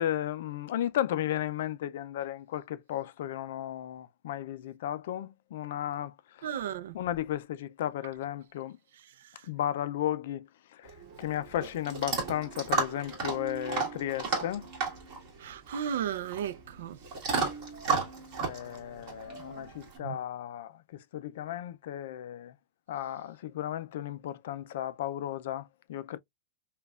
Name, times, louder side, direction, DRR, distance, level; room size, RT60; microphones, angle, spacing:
voice 1, 0.0-6.7 6.9-8.8 9.5-10.9 11.2-14.7 18.4-22.5 22.9-26.2, left 12 dB, 55° left, 0.4 m, -34 dB
voice 2, 6.4-6.9 15.4-17.0 20.0-20.2, right 9 dB, 65° right, 0.5 m, -34 dB
Chewing mastication / Dog, 10.8-20.0, right 4 dB, 30° right, 1.6 m, -34 dB
5.2 x 2.3 x 2.3 m
supercardioid pair, 180°, 0 cm